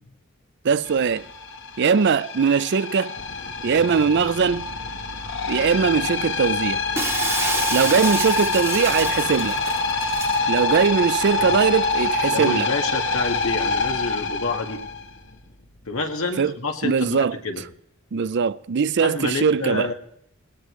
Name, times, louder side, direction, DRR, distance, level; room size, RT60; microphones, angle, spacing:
voice 1, 0.6-1.3 1.8-3.2 3.6-4.7 5.5-6.8 7.7-9.6 10.5-12.7 16.4-16.5 16.8-17.4 18.1-19.9, right 6 dB, 55° right, 0.5 m, -21 dB
sound 1, 0.8-15.4, left 3 dB, 60° left, 1.3 m, -26 dB
Shatter, 7.0-10.4, right 3 dB, 15° right, 1.4 m, -29 dB
voice 2, 12.3-14.8 15.9-17.6 19.0-19.9, left 3 dB, 80° left, 1.8 m, -28 dB
19.5 x 18.5 x 3.2 m
head